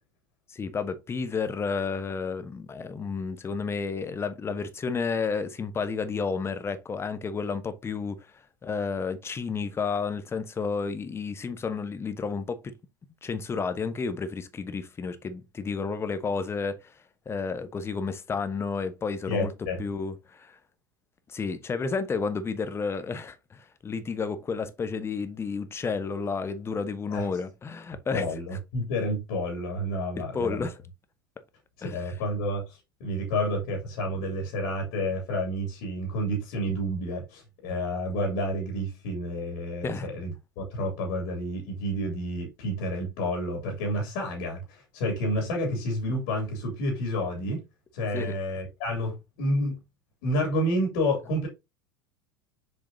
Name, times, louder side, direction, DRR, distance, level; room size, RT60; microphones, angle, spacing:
voice 1, 0.5-12.7 13.2-16.9 17.3-19.5 19.8-20.6 21.3-28.2 30.2-30.8 31.8-32.1 39.8-40.1 48.1-48.3, left 5 dB, 20° left, 1.0 m, -31 dB
voice 2, 19.3-19.8 27.1-27.3 28.1-30.7 31.8-47.7 47.9-49.8 50.2-51.5, equal, 60° left, 2.9 m, -30 dB
7.2 x 5.0 x 2.7 m
figure-of-eight pair, 80°, 11 cm